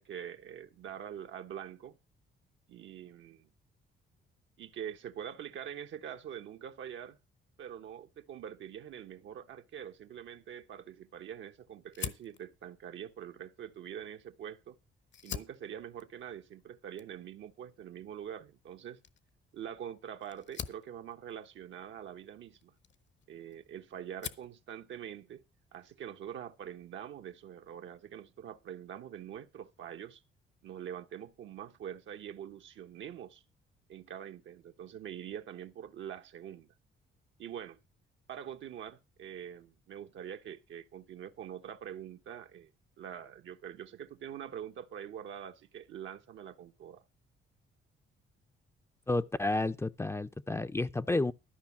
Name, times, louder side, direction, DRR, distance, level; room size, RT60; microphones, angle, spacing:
voice 1, 0.0-2.0 2.7-3.5 4.6-7.2 7.6-14.8 15.2-19.0 19.5-22.7 23.3-25.4 25.7-30.2 30.6-33.4 33.9-36.7 37.4-37.8 38.3-42.7 43.0-47.0, right 9 dB, 70° right, 1.0 m, -44 dB
Fire, 11.9-14.5 15.0-23.6 24.0-24.6, left 8 dB, 65° left, 1.1 m, -46 dB
voice 2, 49.1-51.3, left 2 dB, 15° left, 0.5 m, -31 dB
13.0 x 5.3 x 7.1 m
cardioid pair, 90°, 20 cm